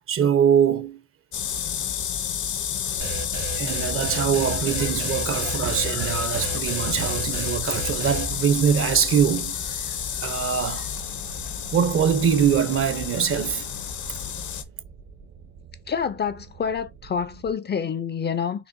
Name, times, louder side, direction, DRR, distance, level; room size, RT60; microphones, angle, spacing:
voice 1, 0.1-1.0 3.6-10.9 11.7-13.7, right 8 dB, 45° right, 0.7 m, -23 dB
sound 1, 1.3-14.6, left 9 dB, 75° left, 0.9 m, -30 dB
sound 2, 2.9-17.5, right 4 dB, 65° right, 1.1 m, -45 dB
sound 3, 3.0-8.3, right 2 dB, 85° right, 2.1 m, -33 dB
voice 2, 15.9-18.7, left 7 dB, 35° left, 0.4 m, -27 dB
6.0 x 2.2 x 2.6 m
cardioid pair, 90°, 30 cm